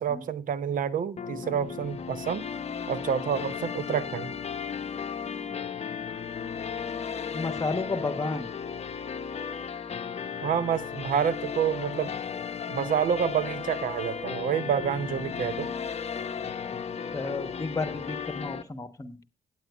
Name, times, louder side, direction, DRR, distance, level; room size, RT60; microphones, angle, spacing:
voice 1, 0.0-2.4 2.9-4.3 10.4-12.1 12.7-15.7, right 8 dB, 50° right, 0.8 m, -28 dB
sound 1, 1.2-18.6, left 6 dB, 35° left, 0.8 m, -35 dB
voice 2, 7.3-8.5 16.7-16.8 17.1-19.2, left 3 dB, 20° left, 1.2 m, -32 dB
17.0 x 9.4 x 2.4 m
figure-of-eight pair, 40°, 18 cm